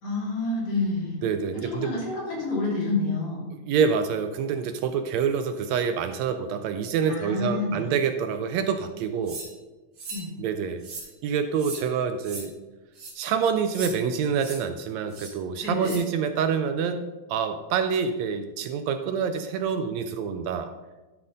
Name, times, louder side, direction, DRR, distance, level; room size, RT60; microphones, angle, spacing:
voice 1, 0.0-1.2 1.5-3.4 7.1-7.9 10.1-10.3 15.6-16.0, left 3 dB, 60° left, -5 dB, 3.7 m, -28 dB
voice 2, 1.2-2.0 3.7-9.4 10.4-10.8 11.2-12.5 13.2-20.7, right 6 dB, 80° right, 8 dB, 1.7 m, -27 dB
sound 1, 9.3-9.5 10.0-10.2 10.8-11.1 11.6-11.8 12.2-12.4 12.9-13.1 13.7-13.9 14.4-14.6 15.1-15.3 15.8-16.0, right 3 dB, 55° right, 3.1 m, -37 dB
12.0 x 5.8 x 3.9 m, 1.1 s
omnidirectional pair, 3.3 m